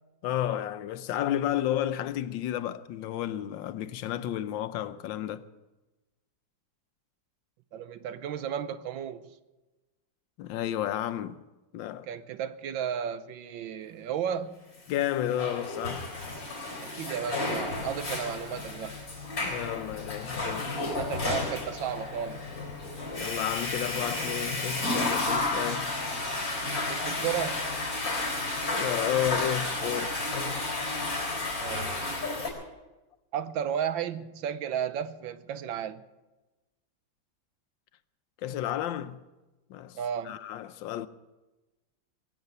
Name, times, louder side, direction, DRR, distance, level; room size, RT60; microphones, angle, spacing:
voice 1, 0.2-5.4 10.4-11.4 11.7-12.1 14.9-16.2 19.4-21.0 23.2-25.9 28.6-30.2 38.4-39.2 39.7-40.0 40.2-41.1, left 11 dB, 80° left, 1.4 m, -32 dB
voice 2, 7.7-9.3 12.1-14.6 16.8-19.0 20.8-22.5 26.9-27.7 31.6-32.0 33.3-36.0 39.9-40.3, right 8 dB, 85° right, 1.5 m, -33 dB
Water / Toilet flush, 15.0-32.5, left 2 dB, 45° left, 4.5 m, -32 dB
22.5 x 7.6 x 8.0 m
omnidirectional pair, 2.0 m